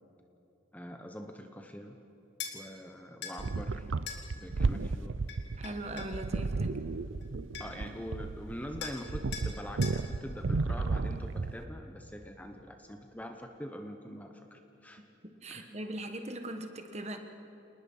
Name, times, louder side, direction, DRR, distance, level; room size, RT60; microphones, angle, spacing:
voice 1, 0.7-2.0 2.5-3.9 4.3-5.2 7.6-15.0 15.5-15.7, equal, 10° left, 5 dB, 0.9 m, -44 dB
sound 1, 2.4-2.6 3.2-3.4 4.1-4.2 5.3-6.2 7.2-7.3 7.5-7.9 8.8-9.0 9.3-9.5 9.8-10.0, left 7 dB, 60° left, 2.4 m, -41 dB
sound 2, 3.4-11.6, right 3 dB, 75° right, 0.6 m, -33 dB
voice 2, 5.6-6.8 15.4-17.2, right 1 dB, 35° right, 6 dB, 1.3 m, -40 dB
28.5 x 19.5 x 5.5 m, 3.0 s
head